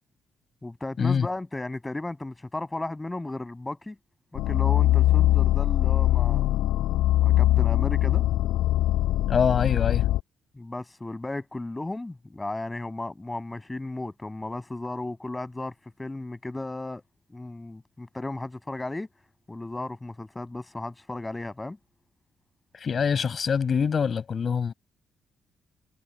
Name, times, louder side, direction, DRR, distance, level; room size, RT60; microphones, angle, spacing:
voice 1, 0.6-4.0 4.3-6.5 7.2-8.2 10.6-15.7 16.0-17.0 17.3-19.1 19.5-21.8, left 2 dB, 15° left, 7.0 m, -35 dB
sound 1, 4.3-10.2, left 14 dB, 90° left, 5.8 m, -22 dB
voice 2, 9.3-10.1 22.7-24.7, left 6 dB, 45° left, 7.7 m, -24 dB
cardioid pair, 90°, 0 cm